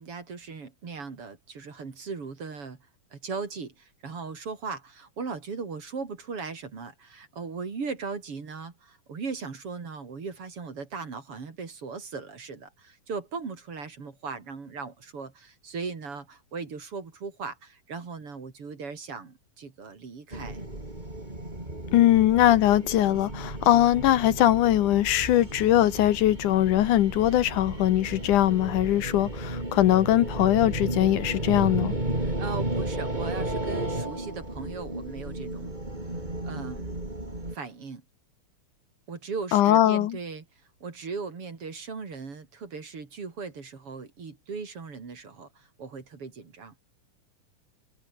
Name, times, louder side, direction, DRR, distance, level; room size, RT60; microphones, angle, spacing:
voice 1, 0.0-2.8 3.1-20.6 32.2-35.8 36.4-36.9 37.5-38.0 39.1-40.5 40.8-46.7, right 5 dB, 45° right, 3.9 m, -38 dB
sound 1, 20.3-37.5, right 1 dB, 10° right, 5.1 m, -33 dB
voice 2, 21.9-31.9 39.5-40.2, left 13 dB, 70° left, 2.4 m, -21 dB
omnidirectional pair, 3.8 m